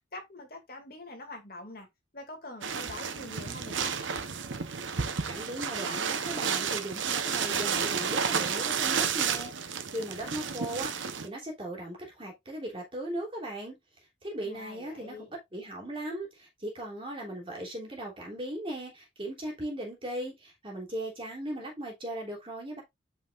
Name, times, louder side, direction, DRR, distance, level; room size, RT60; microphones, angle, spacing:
voice 1, 0.1-1.9 2.1-4.0 14.4-15.3, left 2 dB, 50° left, 2.4 m, -44 dB
sound 1, 2.6-11.3, right 6 dB, 85° right, 0.9 m, -31 dB
voice 2, 5.3-13.8 14.2-15.1 15.5-22.8, right 1 dB, 30° right, 3.1 m, -38 dB
8.1 x 5.6 x 2.5 m
head